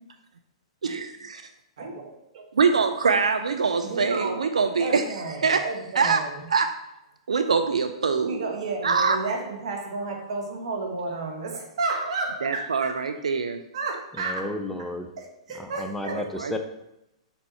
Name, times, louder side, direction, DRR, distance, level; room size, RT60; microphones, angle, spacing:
voice 1, 0.8-1.4 2.5-5.0 5.4-5.7 5.9-6.2 6.5-6.7 7.3-8.5 8.8-9.2 12.4-13.6 16.1-16.5, right 5 dB, 90° right, 8 dB, 0.4 m, -24 dB
voice 2, 1.8-2.5 3.8-4.5 4.8-6.4 8.2-13.0 13.7-14.4 15.5-16.2, right 3 dB, 70° right, 2 dB, 1.5 m, -32 dB
voice 3, 14.1-15.1 15.5-16.6, left 1 dB, 5° left, 5 dB, 0.6 m, -33 dB
5.3 x 4.3 x 4.2 m, 0.87 s
hypercardioid pair, 120°, 3 cm